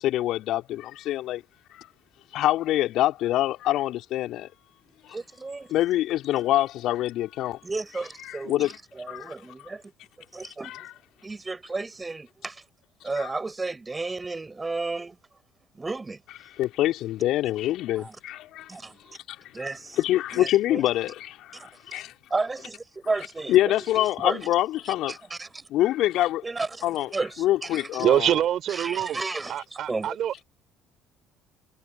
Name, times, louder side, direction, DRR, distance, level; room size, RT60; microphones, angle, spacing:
voice 1, 0.0-1.4 1.7-1.9 2.3-4.5 5.7-7.6 8.2-8.8 9.1-9.3 10.6-10.9 13.2-13.3 16.6-18.7 19.3-19.7 20.0-22.1 23.5-25.2 25.7-26.4 26.8-27.1 27.4-28.4, left 14 dB, 60° left, 3.3 m, -25 dB
voice 2, 5.1-5.7 7.6-9.8 10.3-10.9 11.2-12.6 13.0-15.2 15.7-16.2 18.0-18.2 18.7-19.0 19.5-20.0 20.3-20.8 21.5-21.7 22.3-24.5 25.1-25.6 26.4-26.8 27.1-27.9 28.7-30.2, right 3 dB, 20° right, 6.6 m, -33 dB
voice 3, 28.0-29.2 29.5-30.4, right 11 dB, 55° right, 4.0 m, -24 dB
hypercardioid pair, 55°, 0 cm